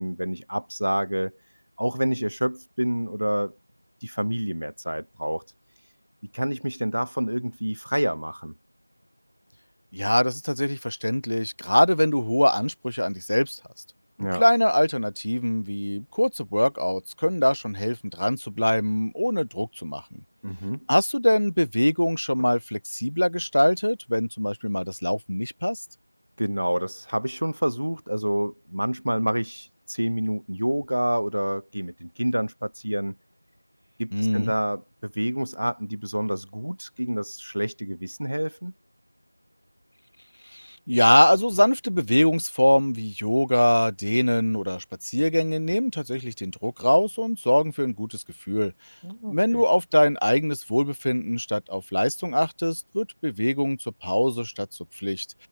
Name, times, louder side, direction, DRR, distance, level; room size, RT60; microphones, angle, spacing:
voice 1, 0.0-1.4 1.8-3.5 4.0-5.4 6.3-8.5 14.2-14.4 20.4-20.9 26.4-33.2 34.0-38.7 49.0-49.6, equal, 90° right, 1.9 m, -28 dB
voice 2, 9.9-13.6 14.2-20.2 20.9-25.8 34.1-34.5 40.5-48.9 49.3-54.7 54.9-55.3, equal, 80° left, 1.5 m, -23 dB
figure-of-eight pair, 180°, 0 cm